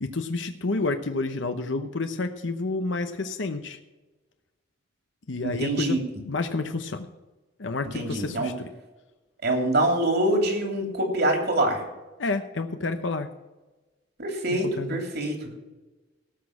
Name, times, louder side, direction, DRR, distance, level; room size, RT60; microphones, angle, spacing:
voice 1, 0.0-3.8 5.3-6.0 6.3-7.1 7.6-8.7 12.2-13.3 14.5-15.0, left 3 dB, 75° left, 7 dB, 0.9 m, -29 dB
voice 2, 5.4-6.0 7.9-8.5 9.4-11.8 14.2-15.5, right 1 dB, 60° right, 3 dB, 2.9 m, -25 dB
17.5 x 6.3 x 5.9 m, 1.2 s
head